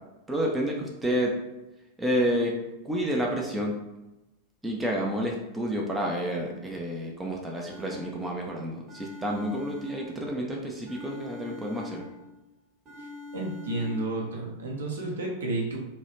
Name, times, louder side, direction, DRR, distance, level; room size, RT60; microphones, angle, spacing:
voice 1, 0.3-1.3 2.0-2.5 2.8-3.7 4.6-12.1, equal, 10° right, -1 dB, 0.4 m, -29 dB
sound 1, 7.7-8.5 8.9-10.5 10.9-12.4 12.9-14.3, left 3 dB, 30° right, 0.8 m, -43 dB
voice 2, 13.3-15.8, right 2 dB, 65° right, -2 dB, 0.6 m, -31 dB
2.3 x 2.1 x 3.0 m, 0.98 s
figure-of-eight pair, 90°, 0 cm